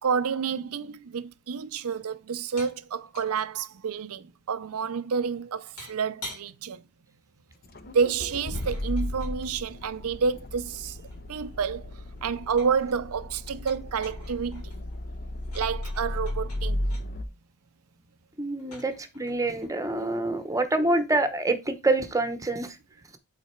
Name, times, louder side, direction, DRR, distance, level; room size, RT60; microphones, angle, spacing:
voice 1, 0.0-6.8 7.9-11.0 11.3-11.9 12.2-14.8 15.5-16.8, right 6 dB, 70° right, 0.5 m, -29 dB
sound 1, 2.6-2.8 3.1-3.5 5.8-6.5 8.3-9.4 10.4-11.6 11.9-12.9 13.4-17.0 18.6-20.6, left 1 dB, 80° left, 3.4 m, -47 dB
Accelerating revving vroom, 7.6-17.2, left 1 dB, 45° left, 0.7 m, -34 dB
voice 2, 18.4-22.8, right 2 dB, 15° right, 0.9 m, -26 dB
8.4 x 4.1 x 4.4 m
head